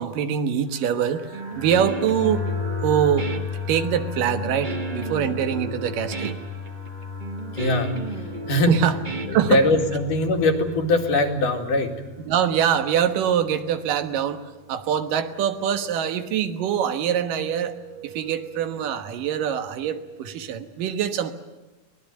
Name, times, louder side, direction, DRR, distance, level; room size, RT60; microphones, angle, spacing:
voice 1, 0.0-2.4 2.8-3.3 3.7-6.4 8.7-8.9 9.3-9.6 12.3-17.8 18.0-21.3, right 9 dB, 80° right, 9 dB, 2.9 m, -24 dB
sound 1, 0.7-20.4, left 5 dB, 55° right, 8.6 m, -36 dB
Guitar, 1.3-10.0, right 3 dB, 35° right, 0.7 m, -34 dB
voice 2, 7.5-8.8 9.3-11.9, left 2 dB, 70° left, 3 dB, 3.8 m, -22 dB
23.5 x 19.5 x 9.2 m, 1.1 s
omnidirectional pair, 3.9 m